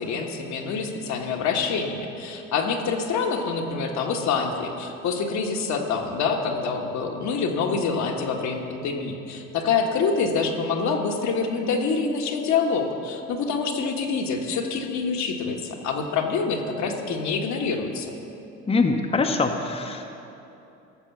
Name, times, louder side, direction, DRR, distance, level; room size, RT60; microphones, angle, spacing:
voice 1, 0.0-18.1, left 5 dB, 60° left, 2 dB, 1.3 m, -26 dB
voice 2, 18.7-20.1, left 3 dB, 20° left, 3 dB, 0.9 m, -23 dB
13.0 x 6.6 x 5.9 m, 2.8 s
hypercardioid pair, 70°, 32 cm